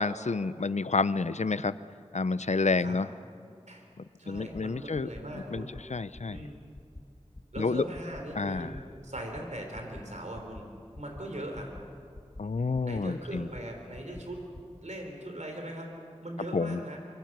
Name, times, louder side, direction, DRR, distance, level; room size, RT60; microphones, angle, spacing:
voice 1, 0.0-1.7 2.1-3.1 4.3-5.1 5.5-5.6 5.9-6.5 7.6-7.8 8.4-8.7 12.4-13.5 16.5-16.8, left 4 dB, 80° left, 16 dB, 0.5 m, -29 dB
voice 2, 4.2-5.8 6.3-6.6 7.5-8.7 9.0-10.7 11.0-11.7 12.8-14.4 14.8-15.9 16.2-17.0, right 1 dB, 85° right, 2 dB, 3.6 m, -40 dB
sound 1, 4.3-4.6 4.9-5.2 5.5-5.8 6.1-6.4 6.7-7.0 7.3-7.6 7.9-8.2 8.5-8.8 9.1-9.4 9.7-10.0 10.3-10.6 10.9-11.2 11.5-11.8 12.1-12.4 12.7-13.0 13.3-13.6 13.9-14.2 14.5-14.6, left 2 dB, 50° left, 1.1 m, -45 dB
24.5 x 24.0 x 6.1 m, 2.4 s
wide cardioid pair, 40°, 12 cm